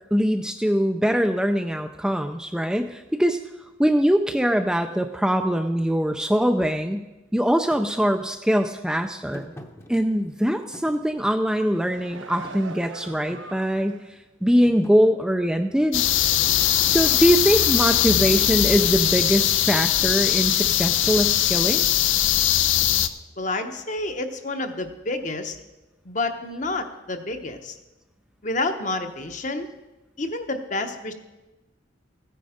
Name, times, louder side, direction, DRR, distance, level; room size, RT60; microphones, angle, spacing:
voice 1, 0.1-3.4 3.8-7.1 7.3-9.5 9.9-16.0 16.9-21.9, equal, 5° right, 6 dB, 0.4 m, -22 dB
Thump thud, 7.7-7.9 9.3-10.4 10.7-11.7 12.1-13.6 14.1-14.4 14.6-15.0 16.4-17.5, equal, 15° left, 0.8 m, -44 dB
sound 1, 11.4-14.1 14.5-14.7, right 4 dB, 80° right, 0.9 m, -42 dB
sound 2, 15.9-23.1, left 11 dB, 80° left, 0.5 m, -20 dB
voice 2, 23.4-25.6 26.0-27.8 28.4-29.7 30.2-31.1, left 2 dB, 40° left, 7 dB, 1.0 m, -29 dB
15.5 x 9.3 x 5.0 m, 1.1 s
head